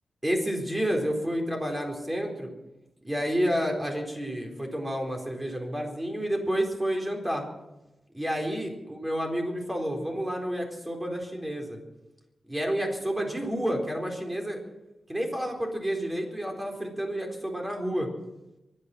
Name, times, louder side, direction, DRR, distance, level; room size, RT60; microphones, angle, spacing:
voice 1, 0.2-2.5 3.0-7.5 8.1-11.8 12.5-14.6 15.1-18.1, equal, 15° right, 1 dB, 4.2 m, -30 dB
23.5 x 10.0 x 6.0 m, 0.95 s
wide cardioid pair, 105°, 0 cm